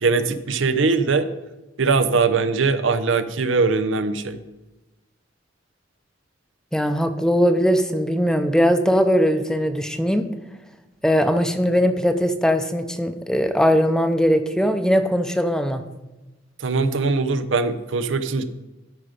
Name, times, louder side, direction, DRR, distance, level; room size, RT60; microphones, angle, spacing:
voice 1, 0.0-1.3 1.8-4.4 16.6-18.4, right 4 dB, 80° right, 12 dB, 0.7 m, -21 dB
voice 2, 6.7-10.3 11.0-15.8, equal, 5° left, 8 dB, 0.6 m, -20 dB
13.0 x 5.1 x 5.1 m, 1.1 s
head